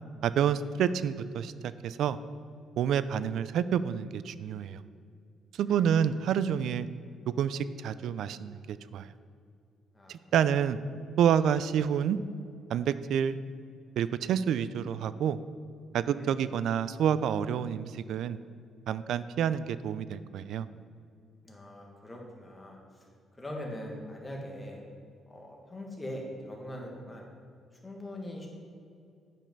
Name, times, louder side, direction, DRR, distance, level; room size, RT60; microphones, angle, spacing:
voice 1, 0.2-1.5 1.8-2.2 2.8-4.8 5.6-6.9 7.4-9.1 10.1-10.8 11.2-12.2 12.7-13.4 14.0-15.4 15.9-18.4 18.9-20.7, right 8 dB, 75° right, 15 dB, 0.3 m, -28 dB
voice 2, 5.6-6.2 9.9-10.1 16.1-16.3 21.4-23.0 23.4-24.8 25.3-27.2 27.8-28.5, left 1 dB, 15° left, -1 dB, 1.7 m, -42 dB
8.7 x 5.4 x 5.3 m, 2.4 s
cardioid pair, 115°, 0 cm